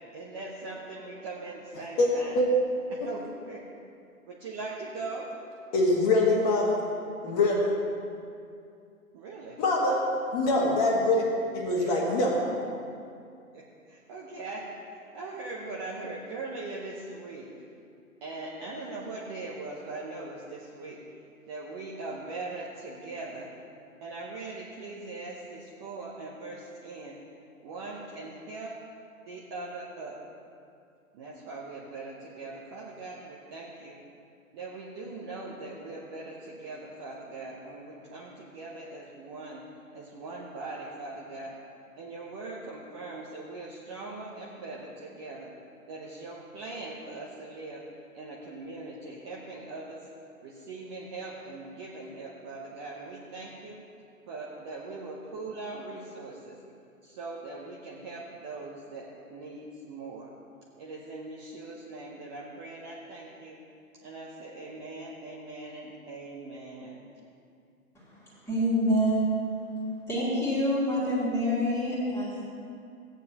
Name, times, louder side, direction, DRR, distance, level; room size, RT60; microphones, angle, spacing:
voice 1, 0.0-2.4 2.9-3.6 4.3-5.3 9.1-9.6 11.8-12.0 13.5-14.7 14.9-17.5 18.2-21.0 21.5-23.5 24.0-27.2 27.6-28.8 29.3-30.2 31.1-34.0 34.5-39.7 39.9-41.6 42.0-45.5 45.9-47.8 48.1-50.1 50.4-53.8 54.3-56.6 57.0-60.3 60.8-63.6 64.0-67.0, right 3 dB, 20° right, -4 dB, 0.7 m, -41 dB
voice 2, 5.7-6.8 7.2-7.7 9.6-10.0 10.3-11.3 11.5-12.4, left 2 dB, 25° left, -2 dB, 1.6 m, -24 dB
voice 3, 68.0-69.4 70.1-72.5, equal, 5° left, -7 dB, 2.2 m, -27 dB
16.0 x 9.0 x 2.9 m, 2.4 s
hypercardioid pair, 140°, 43 cm